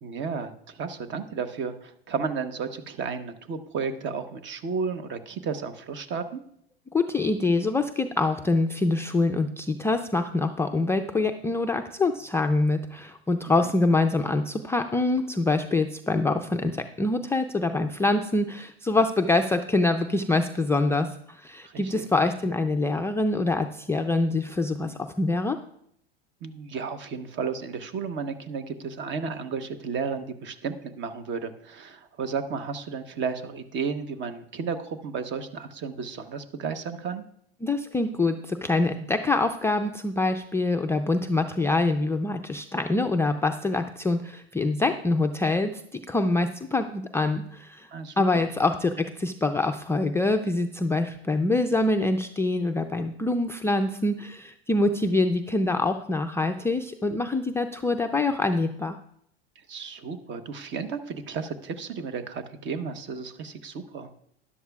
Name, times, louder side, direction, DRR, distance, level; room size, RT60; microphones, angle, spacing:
voice 1, 0.0-6.4 21.6-22.0 26.4-37.2 47.9-48.5 59.7-64.1, right 5 dB, 40° right, 10 dB, 1.1 m, -33 dB
voice 2, 6.9-25.6 37.6-47.9 48.2-59.0, left 2 dB, 10° left, 4 dB, 0.4 m, -25 dB
12.5 x 11.0 x 2.4 m, 0.69 s
hypercardioid pair, 100°, 30 cm